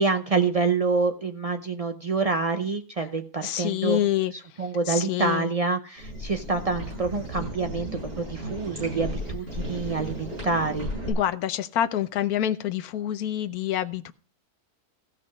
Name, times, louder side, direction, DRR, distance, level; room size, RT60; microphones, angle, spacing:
voice 1, 0.0-4.0 4.6-10.9, right 4 dB, 60° right, 0.3 m, -27 dB
voice 2, 3.4-4.3 4.9-5.5 11.1-14.1, left 11 dB, 75° left, 1.2 m, -27 dB
sound 1, 6.0-11.1, equal, 35° right, 7.5 m, -34 dB
15.0 x 5.7 x 5.2 m
omnidirectional pair, 1.7 m